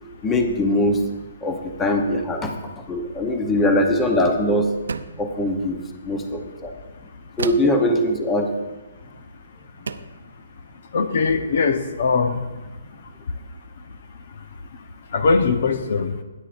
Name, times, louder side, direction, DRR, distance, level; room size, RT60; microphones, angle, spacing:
voice 1, 0.2-1.0 1.4-2.6 2.9-4.7 5.2-6.7 7.4-8.5, left 1 dB, 10° left, 4 dB, 0.9 m, -21 dB
sound 1, 4.9-5.3 7.4-7.8 9.2-9.3 9.9-10.2, right 5 dB, 85° right, 0.6 m, -31 dB
voice 2, 10.9-12.4 15.1-16.1, left 4 dB, 55° left, 8 dB, 0.8 m, -20 dB
20.5 x 10.0 x 2.6 m, 1.2 s
hypercardioid pair, 165°, 0 cm